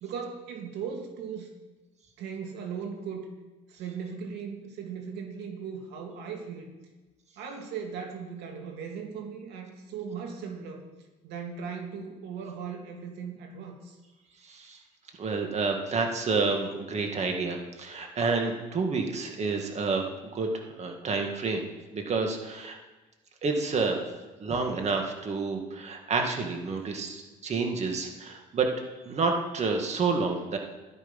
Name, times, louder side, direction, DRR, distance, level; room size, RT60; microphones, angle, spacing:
voice 1, 0.0-1.5 2.2-3.3 3.7-6.7 7.4-10.8 11.2-14.0, right 6 dB, 85° right, 3 dB, 2.3 m, -38 dB
voice 2, 14.4-14.8 15.2-21.7 21.9-22.8 23.4-24.0 24.4-28.7 29.1-30.6, right 4 dB, 40° right, 3 dB, 2.2 m, -29 dB
14.0 x 11.5 x 5.6 m, 1.2 s
cardioid pair, 110°, 17 cm